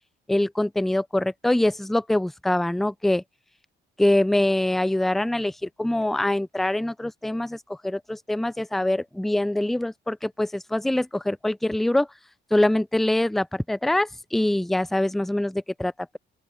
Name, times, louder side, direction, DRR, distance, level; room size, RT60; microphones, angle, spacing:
voice 1, 0.3-3.2 4.0-7.6 7.8-12.1 12.5-16.2, left 1 dB, ahead, 0.4 m, -24 dB
open air
cardioid pair, 90°, 20 cm